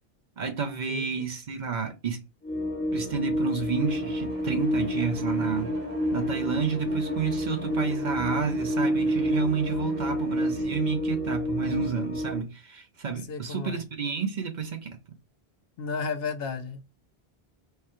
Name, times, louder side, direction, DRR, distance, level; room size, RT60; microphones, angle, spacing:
voice 1, 0.4-2.2 2.9-5.8 6.1-15.0, right 5 dB, 55° right, 0.7 m, -30 dB
voice 2, 0.9-1.3 13.3-13.8 15.8-16.8, left 5 dB, 70° left, 0.8 m, -33 dB
sound 1, 2.4-12.4, equal, 15° left, 0.5 m, -29 dB
Bowed string instrument, 3.8-10.4, equal, 80° right, 1.1 m, -41 dB
4.7 x 2.3 x 2.9 m
omnidirectional pair, 1.0 m